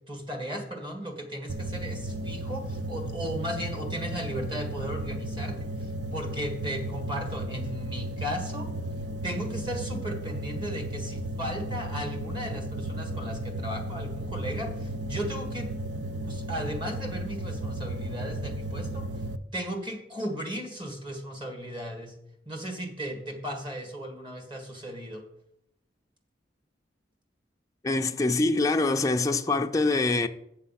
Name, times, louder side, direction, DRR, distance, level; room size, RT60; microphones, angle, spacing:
voice 1, 0.1-8.7 9.2-15.7 16.3-19.1 19.5-22.1 22.4-25.2, equal, 25° right, 1.6 m, -36 dB
sound 1, 1.5-19.4, right 1 dB, 75° right, 0.5 m, -34 dB
voice 2, 27.8-30.3, left 3 dB, 20° left, 0.4 m, -24 dB
8.1 x 6.7 x 5.7 m
head